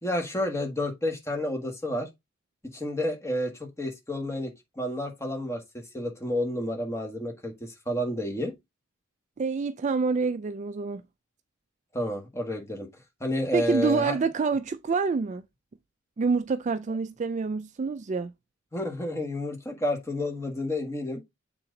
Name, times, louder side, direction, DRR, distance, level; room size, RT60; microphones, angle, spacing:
voice 1, 0.0-2.1 2.7-8.5 11.9-12.9 13.2-14.2 18.7-21.2, left 1 dB, 15° left, 1.5 m, -30 dB
voice 2, 9.4-11.0 13.5-15.4 16.2-18.3, right 4 dB, 35° right, 0.3 m, -27 dB
7.4 x 3.8 x 3.8 m
head